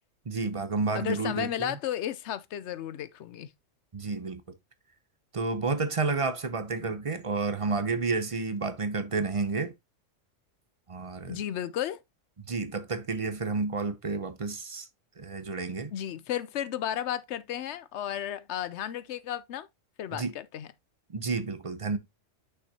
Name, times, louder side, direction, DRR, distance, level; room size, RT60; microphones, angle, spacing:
voice 1, 0.3-1.7 3.9-4.4 5.3-9.7 10.9-11.4 12.5-14.9 15.2-15.9 20.1-20.3 21.1-22.0, right 4 dB, 35° right, 0.6 m, -30 dB
voice 2, 0.9-3.5 11.3-12.0 15.9-19.7 20.0-20.7, left 11 dB, 70° left, 0.8 m, -33 dB
6.3 x 5.9 x 2.8 m
omnidirectional pair, 1.3 m